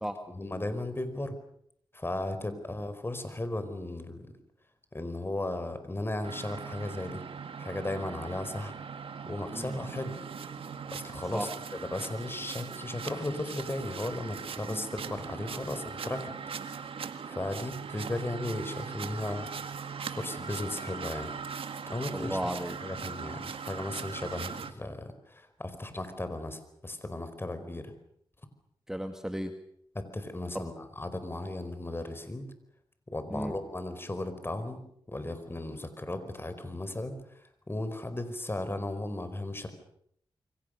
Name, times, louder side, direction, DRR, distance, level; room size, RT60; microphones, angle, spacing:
voice 1, 0.3-1.4 1.9-4.3 4.9-7.2 7.6-8.7 9.3-10.2 10.9-19.5 20.1-21.3 21.9-22.4 22.8-27.9 29.9-32.5 33.1-39.7, left 1 dB, 25° left, 10 dB, 4.8 m, -36 dB
sound 1, 6.2-24.7, right 6 dB, 85° right, 1.7 m, -40 dB
voice 2, 22.1-22.8 28.9-29.5 30.5-30.6 33.3-33.5, equal, 5° right, 6 dB, 2.1 m, -34 dB
28.0 x 24.0 x 6.6 m, 0.70 s
cardioid pair, 70°, 9 cm